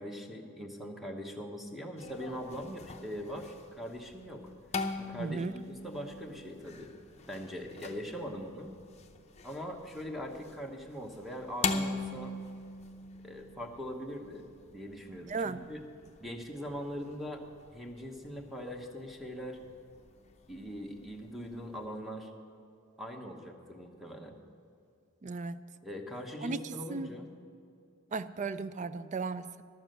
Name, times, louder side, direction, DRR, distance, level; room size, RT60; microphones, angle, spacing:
voice 1, 0.0-4.5 5.0-6.9 7.3-8.7 9.4-12.3 13.2-14.4 14.7-15.8 16.2-17.4 17.7-19.6 20.5-22.3 23.0-24.3 25.8-27.3, equal, ahead, 2 dB, 1.0 m, -41 dB
sound 1, 2.0-21.9, left 3 dB, 30° left, 0.7 m, -42 dB
voice 2, 5.2-5.5 15.2-15.7 25.2-25.7 26.4-27.1 28.1-29.6, right 4 dB, 35° right, 14 dB, 0.4 m, -36 dB
12.0 x 7.1 x 7.8 m, 2.5 s
head